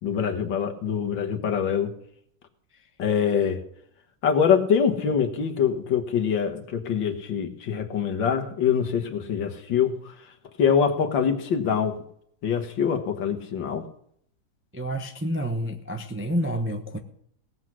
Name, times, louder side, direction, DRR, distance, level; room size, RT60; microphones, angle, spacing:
voice 1, 0.0-1.9 3.0-3.6 4.2-10.0 10.6-12.0 12.4-13.8, left 7 dB, 90° left, 4 dB, 2.1 m, -24 dB
voice 2, 14.7-17.0, equal, 10° right, 4 dB, 0.5 m, -29 dB
18.0 x 8.1 x 6.1 m, 0.68 s
omnidirectional pair, 2.0 m